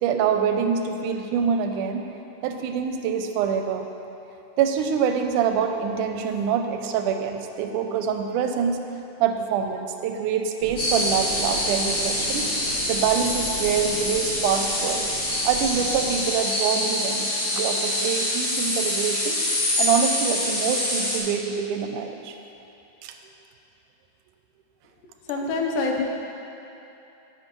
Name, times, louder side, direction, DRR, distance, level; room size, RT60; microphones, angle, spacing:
voice 1, 0.0-2.0 2.4-3.9 4.6-8.8 9.2-12.5 12.9-15.1 15.5-22.4 23.0-23.1, right 7 dB, 85° right, 5 dB, 2.0 m, -25 dB
sound 1, 10.6-16.2, right 3 dB, 55° right, 1.2 m, -37 dB
sound 2, 10.8-21.2, left 1 dB, 70° left, 3.4 m, -25 dB
voice 2, 25.3-26.0, left 3 dB, 85° left, 1 dB, 2.5 m, -25 dB
10.5 x 9.3 x 3.0 m, 2.9 s
omnidirectional pair, 3.7 m